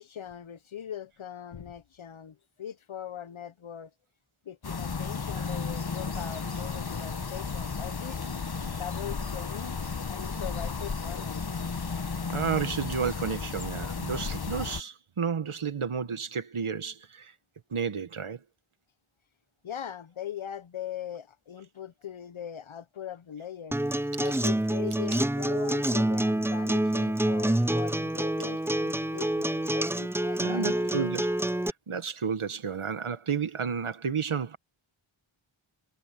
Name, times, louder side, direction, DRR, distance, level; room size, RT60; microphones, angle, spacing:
voice 1, 0.0-3.9 4.5-8.3 8.6-9.8 10.1-11.5 19.6-23.8 24.2-30.9, left 10 dB, 75° left, 0.8 m, -41 dB
sound 1, 4.6-14.8, left 5 dB, 50° left, 1.2 m, -34 dB
Chirp tweet, 5.6-13.1, right 2 dB, 50° right, 7.2 m, -51 dB
voice 2, 12.3-17.3 17.7-18.4 30.4-31.3 31.9-34.6, right 6 dB, 80° right, 1.4 m, -31 dB
Acoustic guitar, 23.7-31.7, right 1 dB, 5° right, 0.5 m, -27 dB
wide cardioid pair, 60°, 49 cm